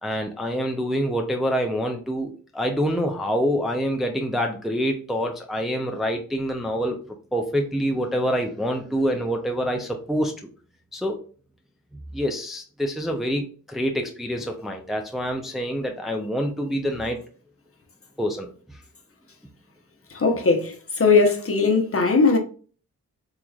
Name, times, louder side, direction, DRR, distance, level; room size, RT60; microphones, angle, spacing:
voice 1, 0.0-7.0 7.3-10.4 10.9-11.2 12.1-17.2 18.2-18.8, equal, ahead, 0.6 m, -26 dB
voice 2, 20.1-22.4, left 4 dB, 40° left, 0.9 m, -19 dB
3.8 x 2.9 x 2.4 m
cardioid pair, 55°, 35 cm